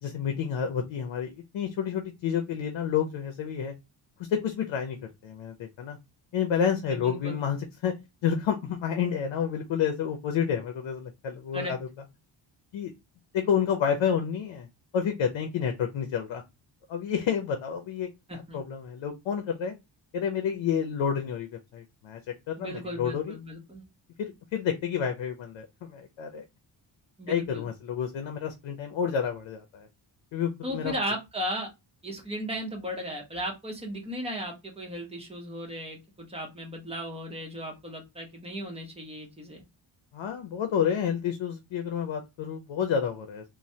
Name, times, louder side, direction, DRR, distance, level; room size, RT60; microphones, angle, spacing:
voice 1, 0.0-3.7 4.3-5.0 5.2-6.0 6.3-7.9 8.2-11.8 12.7-12.9 13.3-14.7 14.9-16.4 16.9-18.1 18.5-19.7 20.1-22.2 22.5-23.4 24.2-26.4 27.3-29.9 30.3-30.9 40.1-43.4, left 7 dB, 90° left, 5 dB, 0.6 m, -29 dB
voice 2, 6.9-7.4 11.5-11.7 18.3-18.6 22.6-23.8 27.2-27.7 30.6-31.7 32.0-39.6, equal, 15° right, 0 dB, 0.8 m, -36 dB
3.1 x 2.2 x 2.7 m, 0.23 s
wide cardioid pair, 140°, 45 cm